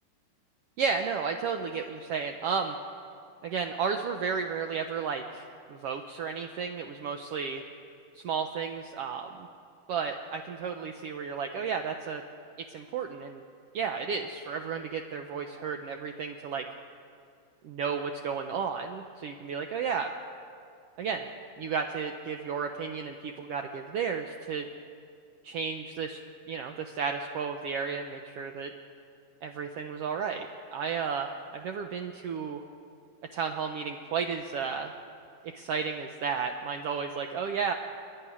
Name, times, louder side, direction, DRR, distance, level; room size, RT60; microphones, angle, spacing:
voice 1, 0.8-2.8 3.4-7.6 8.2-9.3 9.9-12.2 12.7-13.4 13.7-16.6 17.6-20.1 21.0-21.3 21.6-24.6 25.4-26.2 26.5-28.7 29.4-30.5 30.7-32.6 33.3-34.9 35.5-37.7, right 6 dB, 80° right, 4 dB, 1.3 m, -33 dB
24.5 x 11.0 x 9.8 m, 2.4 s
omnidirectional pair, 3.7 m